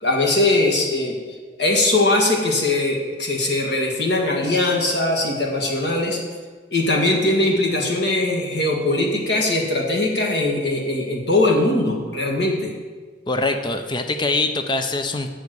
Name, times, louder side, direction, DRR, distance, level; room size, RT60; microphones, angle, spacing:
voice 1, 0.0-1.2 1.6-6.2 6.7-12.7, left 2 dB, 65° left, 0 dB, 1.8 m, -20 dB
voice 2, 13.3-15.3, left 2 dB, 25° left, 7 dB, 0.6 m, -23 dB
7.2 x 7.1 x 7.9 m, 1.4 s
head